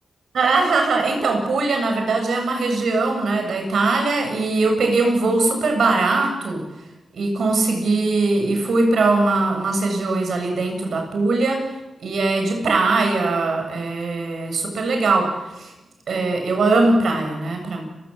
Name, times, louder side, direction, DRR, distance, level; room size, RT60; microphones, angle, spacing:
voice 1, 0.3-6.6 7.1-11.6 12.0-15.7 16.1-17.8, right 3 dB, 80° right, 4 dB, 7.5 m, -21 dB
29.5 x 17.0 x 8.5 m, 1.0 s
cardioid pair, 65°, 0 cm